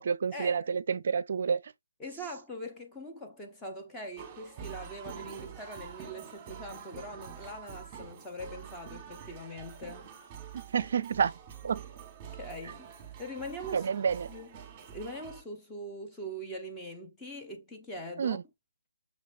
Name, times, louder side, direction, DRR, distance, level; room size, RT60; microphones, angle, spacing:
voice 1, 0.0-1.6 10.5-11.3 11.6-11.8 13.7-14.3 18.2-18.4, right 6 dB, 45° right, 0.5 m, -29 dB
voice 2, 2.0-10.1 12.4-12.9 13.2-13.9 14.3-14.5 14.9-18.4, equal, 5° left, 0.7 m, -42 dB
sound 1, 4.2-15.4, right 8 dB, 15° right, 1.5 m, -46 dB
6.2 x 3.2 x 2.5 m
figure-of-eight pair, 155°, 0 cm